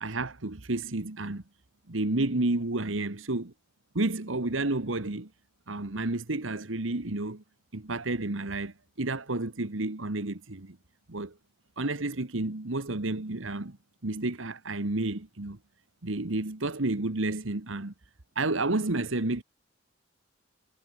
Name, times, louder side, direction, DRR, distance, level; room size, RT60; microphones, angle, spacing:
voice 1, 0.0-1.4 1.9-3.4 4.0-5.3 5.7-7.4 7.7-10.8 11.1-11.3 11.8-13.8 14.0-15.6 16.0-17.9 18.4-19.4, right 2 dB, 90° right, 1.7 m, -30 dB
head